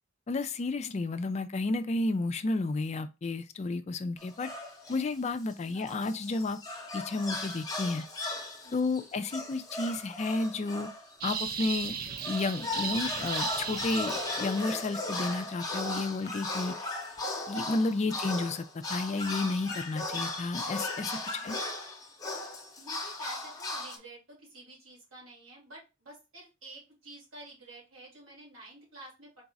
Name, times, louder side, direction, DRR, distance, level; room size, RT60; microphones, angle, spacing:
voice 1, 0.3-4.5 4.9-6.6 6.9-8.1 8.7-10.9 11.2-12.0 12.3-16.7 17.5-21.6, left 3 dB, 35° left, 0.3 m, -32 dB
sound 1, 4.2-5.1 5.5-11.6 12.0-24.0, left 2 dB, 20° left, 0.7 m, -37 dB
voice 2, 8.6-9.1 21.2-21.6 22.8-29.4, right 2 dB, 85° right, 2.4 m, -51 dB
sound 2, 11.2-14.9, right 7 dB, 45° right, 0.4 m, -36 dB
4.0 x 2.4 x 3.9 m
head